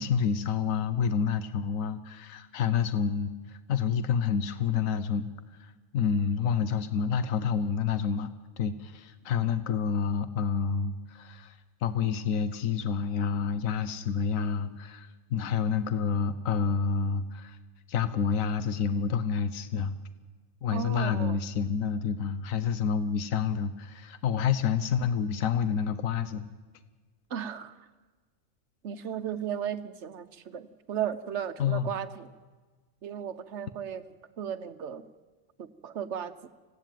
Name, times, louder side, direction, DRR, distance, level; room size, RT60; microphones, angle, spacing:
voice 1, 0.0-5.3 5.6-8.3 8.6-11.6 11.8-17.6 17.9-20.0 20.6-26.5 31.6-31.9, left 6 dB, 85° left, 11 dB, 1.3 m, -28 dB
voice 2, 20.7-21.4 27.3-27.8 28.8-32.3 33.0-34.0 34.4-35.0 35.6-36.5, right 9 dB, 60° right, 12 dB, 1.2 m, -35 dB
25.0 x 16.5 x 9.2 m, 1.4 s
omnidirectional pair, 1.4 m